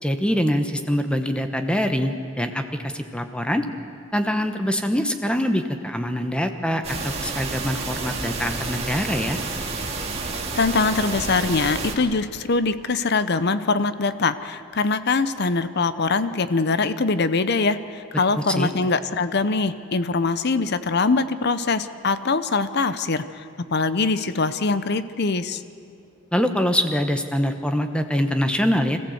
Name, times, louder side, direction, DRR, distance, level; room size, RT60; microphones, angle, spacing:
voice 1, 0.0-3.6 4.1-9.4 18.4-18.7 26.3-29.0, equal, 5° left, 7 dB, 1.0 m, -24 dB
sound 1, 6.8-11.9, right 3 dB, 30° right, 2.1 m, -30 dB
voice 2, 10.5-25.6, left 3 dB, 50° left, 13 dB, 0.7 m, -23 dB
26.0 x 15.0 x 8.0 m, 2.4 s
head